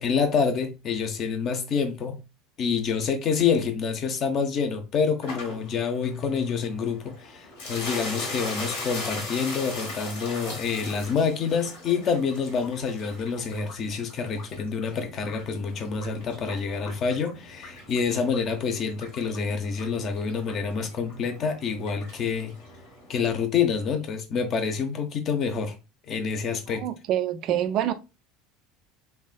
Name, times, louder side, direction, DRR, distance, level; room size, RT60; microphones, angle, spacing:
voice 1, 0.0-2.2 2.6-22.5 23.1-25.7 26.1-26.8, left 6 dB, 40° left, 0.7 m, -27 dB
sound 1, 5.2-23.4, left 2 dB, 65° left, 1.4 m, -40 dB
voice 2, 26.7-27.9, right 11 dB, 45° right, 0.4 m, -26 dB
3.4 x 3.3 x 2.3 m
figure-of-eight pair, 70°, 0 cm